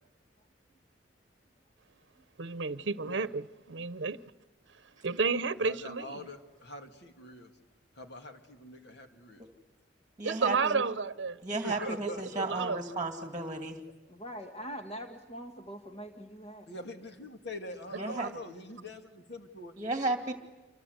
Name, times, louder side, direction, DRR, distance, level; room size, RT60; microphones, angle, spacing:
voice 1, 2.4-4.2 4.7-6.3 10.2-11.4 11.8-12.8 18.1-18.4, right 4 dB, 75° right, 0.8 m, -32 dB
voice 2, 5.6-7.5 7.9-9.4 11.5-13.5 16.7-19.7, left 1 dB, 65° left, 2.5 m, -44 dB
voice 3, 10.2-10.8 11.4-13.8 18.0-18.3 19.8-20.3, right 2 dB, 20° right, 2.2 m, -34 dB
voice 4, 14.1-16.7, equal, 35° left, 1.8 m, -43 dB
28.0 x 25.0 x 8.1 m
head